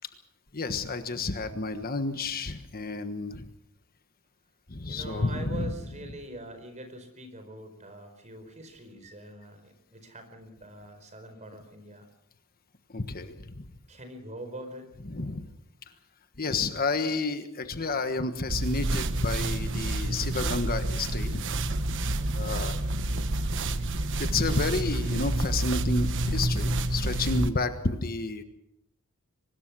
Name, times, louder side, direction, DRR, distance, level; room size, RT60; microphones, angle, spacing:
voice 1, 0.5-3.4 4.7-5.7 12.9-13.7 15.1-15.4 16.4-21.4 22.3-22.8 24.2-28.4, left 3 dB, 45° left, 8 dB, 1.4 m, -30 dB
voice 2, 4.9-12.1 13.9-14.9 22.0-22.3, right 1 dB, 35° right, 7 dB, 4.6 m, -43 dB
sound 1, 18.5-27.5, right 1 dB, 60° right, 1.2 m, -28 dB
24.0 x 20.5 x 6.2 m, 0.81 s
head